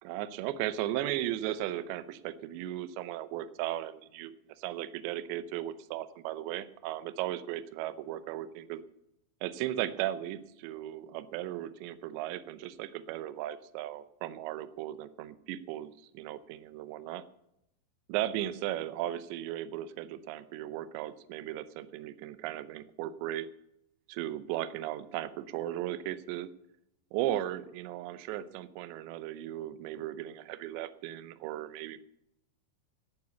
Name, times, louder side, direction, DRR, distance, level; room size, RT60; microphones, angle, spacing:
voice 1, 0.0-8.8 9.4-17.2 18.1-23.5 24.1-26.5 27.1-32.0, right 13 dB, 80° right, 14 dB, 2.9 m, -36 dB
10.5 x 10.0 x 8.2 m, 0.80 s
omnidirectional pair, 5.2 m